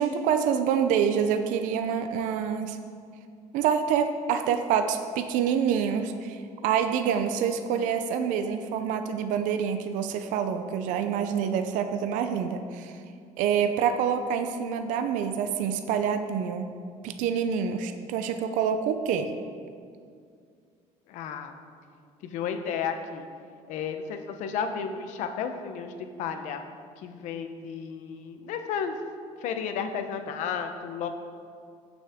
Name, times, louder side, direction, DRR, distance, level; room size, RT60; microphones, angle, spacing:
voice 1, 0.0-2.8 3.5-12.9 13.4-16.7 17.0-19.3, right 7 dB, 75° right, 8 dB, 0.6 m, -27 dB
voice 2, 21.1-21.5 22.3-23.3 23.7-26.6 27.0-29.0 29.4-31.1, left 7 dB, 70° left, 7 dB, 0.8 m, -33 dB
15.5 x 6.2 x 3.6 m, 2.2 s
cardioid pair, 170°, 13 cm